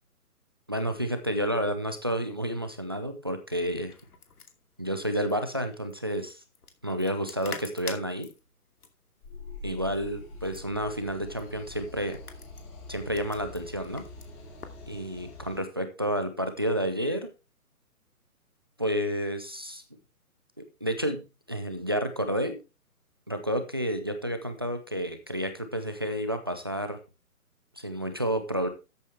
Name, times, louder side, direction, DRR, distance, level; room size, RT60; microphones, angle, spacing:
voice 1, 0.7-3.9 4.8-6.4 6.8-8.3 9.6-12.2 12.9-14.1 14.9-17.3 18.8-19.8 20.8-22.6 23.3-27.0 27.8-28.7, equal, 15° right, 8 dB, 0.5 m, -30 dB
sound 1, 3.7-14.8, left 4 dB, 75° left, 2.6 m, -47 dB
sound 2, 9.2-15.6, left 2 dB, 15° left, 2.5 m, -44 dB
13.5 x 8.3 x 3.4 m, 0.28 s
hypercardioid pair, 155°, 46 cm